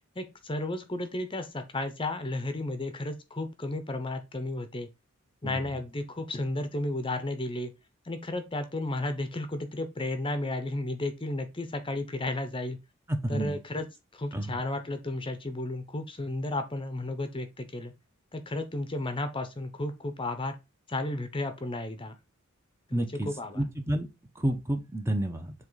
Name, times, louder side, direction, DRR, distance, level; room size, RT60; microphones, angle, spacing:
voice 1, 0.2-4.9 5.4-7.7 8.0-12.8 13.3-13.9 14.1-17.9 18.3-20.6 20.9-22.2 22.9-23.6, left 2 dB, 25° left, 0.8 m, -33 dB
voice 2, 13.1-13.6 14.3-14.6 22.9-23.3 23.5-24.1 24.4-25.5, right 1 dB, 15° right, 0.9 m, -30 dB
7.8 x 3.2 x 4.0 m
head